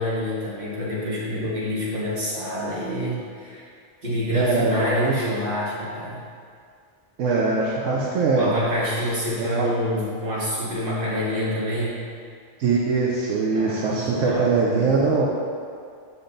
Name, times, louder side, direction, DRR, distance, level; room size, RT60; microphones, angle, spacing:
voice 1, 0.0-3.7 4.0-6.2 8.3-12.0 13.5-15.3, equal, 45° right, -8 dB, 2.0 m, -27 dB
voice 2, 4.3-5.1 7.2-8.5 9.4-9.7 12.6-15.3, right 4 dB, 80° right, -3 dB, 1.1 m, -22 dB
7.2 x 5.6 x 3.9 m, 2.3 s
omnidirectional pair, 1.3 m